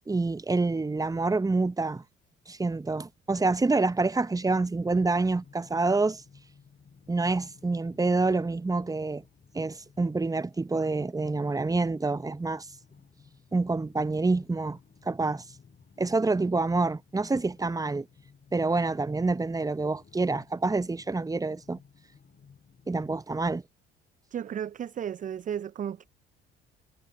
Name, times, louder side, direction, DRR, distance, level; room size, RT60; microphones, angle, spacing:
voice 1, 0.1-2.0 2.5-6.2 7.1-9.2 9.5-12.7 13.5-14.8 15.0-15.4 16.0-18.1 18.5-21.8 22.9-23.6, right 3 dB, 10° right, 0.8 m, -27 dB
sound 1, 4.4-23.2, left 6 dB, 35° left, 3.7 m, -57 dB
voice 2, 24.3-26.1, right 9 dB, 25° right, 0.4 m, -34 dB
hypercardioid pair, 55°, 30 cm